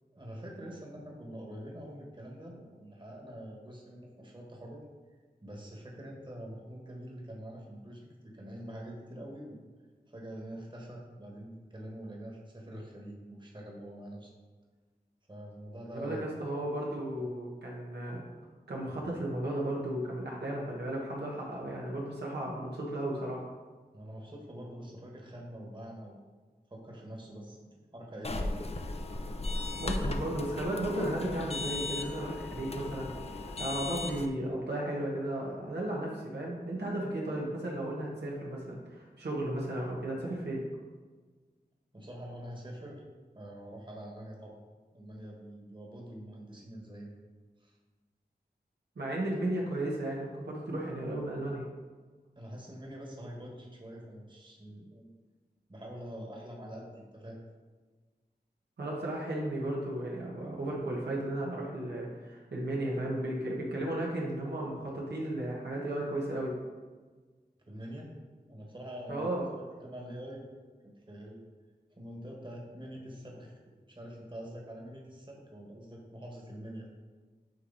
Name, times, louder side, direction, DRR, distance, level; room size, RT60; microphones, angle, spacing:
voice 1, 0.1-4.8 5.4-9.6 10.1-14.3 15.3-16.2 23.9-26.3 26.7-28.6 41.9-43.0 43.3-44.5 44.9-47.1 47.6-47.7 52.3-55.1 55.7-57.4 67.7-69.3 69.8-70.4 71.1-71.4 72.0-73.5 73.9-76.9, equal, 30° right, -1 dB, 1.6 m, -45 dB
voice 2, 15.9-18.2 18.7-23.4 29.5-40.6 48.9-51.6 58.8-66.5 69.1-69.5, right 1 dB, 85° right, -4 dB, 1.4 m, -34 dB
sound 1, 28.2-34.3, left 2 dB, 35° left, 0.6 m, -36 dB
9.3 x 3.2 x 4.1 m, 1.4 s
cardioid pair, 50°, 17 cm